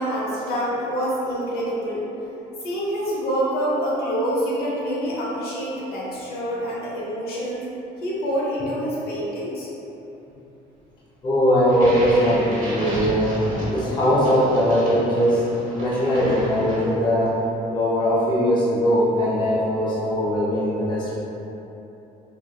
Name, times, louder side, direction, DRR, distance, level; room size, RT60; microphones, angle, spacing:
voice 1, 0.0-2.1 2.6-7.6 8.0-9.7, equal, 65° left, -6 dB, 0.9 m, -26 dB
voice 2, 11.2-13.3 13.7-15.4 15.7-17.4 17.7-21.2, equal, 25° left, -7 dB, 0.5 m, -20 dB
sound 1, 11.7-17.2, equal, 55° right, 1.1 m, -32 dB
4.2 x 2.1 x 2.3 m, 3.0 s
cardioid pair, 110°, 17 cm